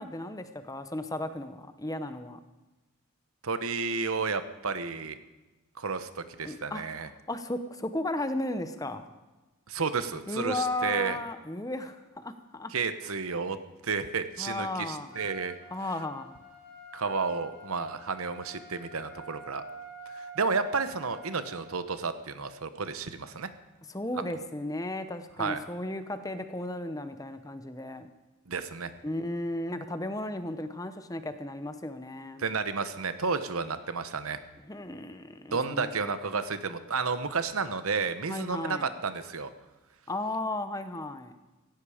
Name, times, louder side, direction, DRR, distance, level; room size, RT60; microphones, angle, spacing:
voice 1, 0.0-2.4 6.4-6.8 7.3-9.1 10.3-12.7 14.4-15.1 15.7-16.3 23.9-28.1 29.0-32.4 34.7-35.9 38.3-38.9 40.1-41.3, left 1 dB, 15° left, 9 dB, 0.8 m, -35 dB
voice 2, 3.4-5.2 5.8-7.1 9.7-11.2 12.7-13.6 13.8-15.6 16.9-19.6 20.1-23.5 25.4-25.6 28.5-28.9 32.4-34.4 35.5-39.5, right 4 dB, 75° right, 11 dB, 1.0 m, -31 dB
Trumpet, 15.1-21.6, right 1 dB, 45° left, 4.9 m, -47 dB
17.0 x 15.5 x 5.0 m, 1.1 s
head